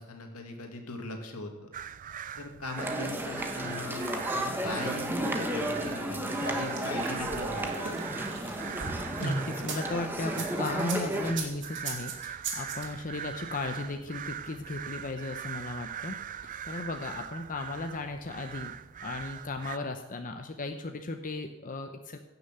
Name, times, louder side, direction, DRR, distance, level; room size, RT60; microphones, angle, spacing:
voice 1, 0.0-1.7 2.4-7.9, left 2 dB, 80° left, 4 dB, 2.3 m, -40 dB
sound 1, 1.7-19.8, right 9 dB, 35° right, 0.4 m, -42 dB
sound 2, 2.8-11.3, right 1 dB, 10° right, 1.2 m, -33 dB
sound 3, 6.5-9.8 10.3-12.8, right 4 dB, 55° right, 2.8 m, -36 dB
voice 2, 9.2-16.2 16.6-18.7 19.0-22.2, left 2 dB, 40° left, 6 dB, 0.8 m, -36 dB
16.5 x 6.7 x 7.9 m, 1.0 s
head